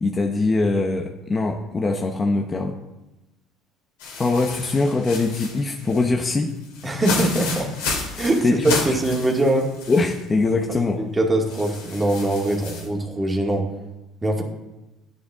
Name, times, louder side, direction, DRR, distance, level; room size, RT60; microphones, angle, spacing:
voice 1, 0.0-2.8 4.2-6.5 8.4-8.7 9.9-11.0, left 3 dB, 25° left, 2 dB, 0.9 m, -22 dB
sound 1, 4.0-10.2 10.6-10.7 11.5-12.9, left 4 dB, 90° left, 3.1 m, -32 dB
voice 2, 6.8-7.7 8.2-9.7 11.0-13.7 14.2-14.4, right 1 dB, 20° right, 0 dB, 2.2 m, -22 dB
11.5 x 9.5 x 3.7 m, 1.0 s
supercardioid pair, 95°, 0 cm